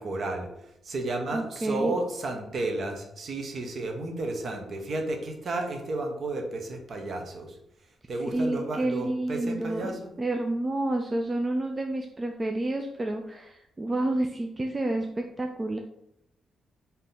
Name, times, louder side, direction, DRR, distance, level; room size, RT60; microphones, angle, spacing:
voice 1, 0.0-7.6 8.1-10.0, right 2 dB, 50° right, 4 dB, 0.8 m, -32 dB
voice 2, 1.3-1.9 8.3-9.9 10.2-15.8, right 2 dB, 20° right, 3 dB, 0.3 m, -29 dB
3.5 x 2.7 x 4.0 m, 0.80 s
cardioid pair, 130°, 0 cm